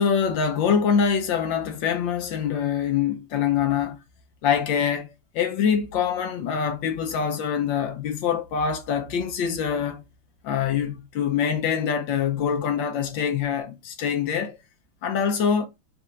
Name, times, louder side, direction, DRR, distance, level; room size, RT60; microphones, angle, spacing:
voice 1, 0.0-4.0 4.4-10.0 10.4-14.6 15.0-15.7, left 7 dB, 70° left, 1.3 m, -24 dB
4.4 x 2.4 x 4.0 m
omnidirectional pair, 2.3 m